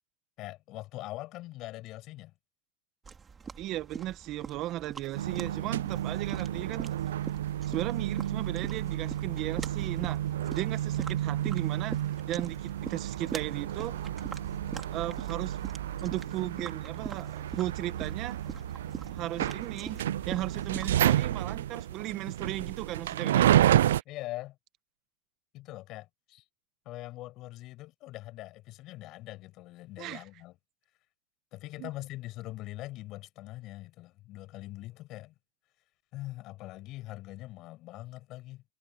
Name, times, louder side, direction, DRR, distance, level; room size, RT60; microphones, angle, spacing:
voice 1, 0.4-2.3 24.0-24.6 25.5-26.5 26.8-30.5 31.5-35.3 36.1-38.6, left 17 dB, 40° left, 6.0 m, -42 dB
sound 1, 3.0-21.0, right 5 dB, 15° right, 3.2 m, -44 dB
voice 2, 3.6-6.9 7.7-10.2 10.5-12.0 12.3-14.0 14.9-15.6 16.0-18.4 19.1-20.0 20.2-23.6 30.0-30.2 31.8-31.9, right 15 dB, 40° right, 1.3 m, -36 dB
sound 2, 5.1-24.0, right 12 dB, 85° right, 0.4 m, -30 dB
Wind instrument woodwind instrument, 12.2-20.8, left 14 dB, 80° left, 7.2 m, -65 dB
supercardioid pair, 135°, 0 cm